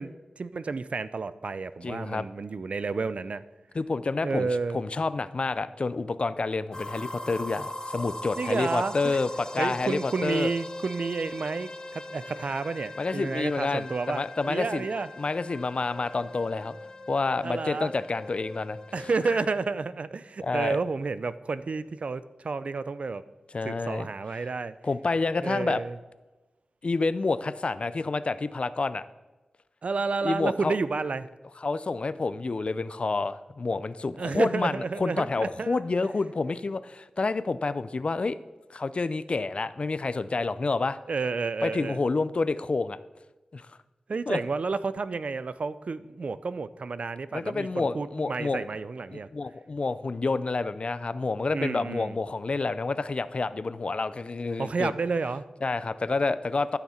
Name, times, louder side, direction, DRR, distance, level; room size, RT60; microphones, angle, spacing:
voice 1, 0.0-3.4 4.2-4.8 8.4-9.2 9.6-15.1 17.4-17.9 18.9-23.2 23.6-24.8 25.4-26.0 29.8-31.3 34.2-35.8 41.1-42.0 44.1-49.3 51.5-52.2 54.6-55.5, right 4 dB, 65° right, 0.4 m, -31 dB
voice 2, 1.8-2.3 3.7-4.5 4.7-10.5 13.0-14.9 15.2-16.7 17.1-18.8 19.3-19.4 20.4-20.8 23.5-24.1 24.8-25.8 26.8-29.0 30.2-30.8 31.6-38.4 38.7-41.0 41.6-43.0 43.5-43.7 44.3-44.4 47.3-48.6 49.1-54.9 55.6-56.8, left 3 dB, 55° left, 0.5 m, -29 dB
sound 1, 6.7-19.4, left 1 dB, 30° left, 1.4 m, -41 dB
13.0 x 5.9 x 4.3 m
cardioid pair, 45°, 2 cm